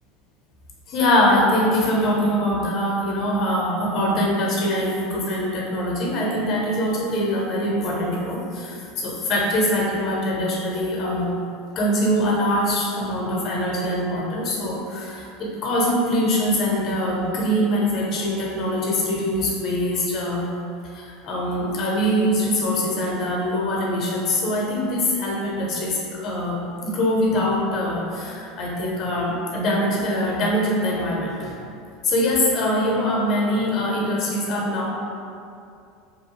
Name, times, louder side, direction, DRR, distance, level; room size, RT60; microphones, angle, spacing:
voice 1, 0.9-11.3 11.8-20.5 20.8-31.6 32.0-34.9, left 1 dB, 45° left, -3 dB, 0.6 m, -23 dB
2.8 x 2.2 x 3.0 m, 2.5 s
figure-of-eight pair, 75°, 0 cm